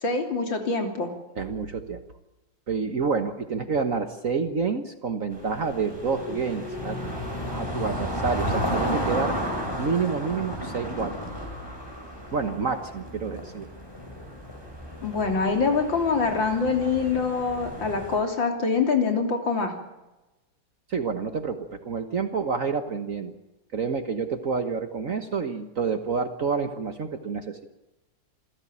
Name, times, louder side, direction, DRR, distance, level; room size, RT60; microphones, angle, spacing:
voice 1, 0.0-1.1 15.0-19.7, left 4 dB, 90° left, 4 dB, 4.0 m, -25 dB
voice 2, 1.4-2.0 2.7-7.2 7.5-9.4 9.8-11.1 12.3-13.7 20.9-23.3 23.7-27.6, right 5 dB, 50° right, 8 dB, 1.5 m, -28 dB
sound 1, 5.3-18.2, equal, 10° left, 4.3 m, -33 dB
27.5 x 15.5 x 8.8 m, 1.0 s
omnidirectional pair, 2.0 m